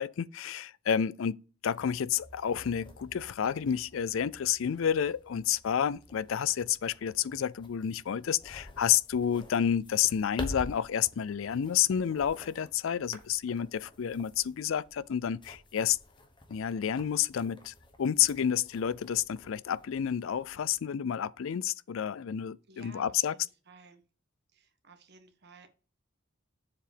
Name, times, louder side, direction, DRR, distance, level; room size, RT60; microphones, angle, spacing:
voice 1, 0.0-16.0 16.5-23.3, left 9 dB, 70° left, 0.4 m, -30 dB
sound 1, 1.7-20.8, left 1 dB, 20° left, 1.2 m, -49 dB
voice 2, 22.7-24.0 24.5-25.7, right 4 dB, 50° right, 1.3 m, -56 dB
7.5 x 4.8 x 5.0 m
head